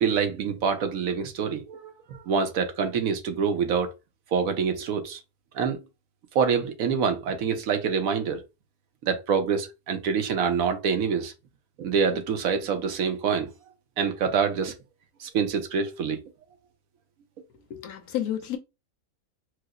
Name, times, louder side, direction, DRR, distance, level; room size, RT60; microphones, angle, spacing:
voice 1, 0.0-3.9 4.3-5.2 5.5-5.8 6.3-8.4 9.1-11.3 11.8-13.5 14.0-14.7 15.2-16.2, right 6 dB, 75° right, 1.1 m, -26 dB
voice 2, 17.7-18.6, left 11 dB, 90° left, 1.2 m, -31 dB
4.6 x 2.0 x 2.4 m
omnidirectional pair, 1.5 m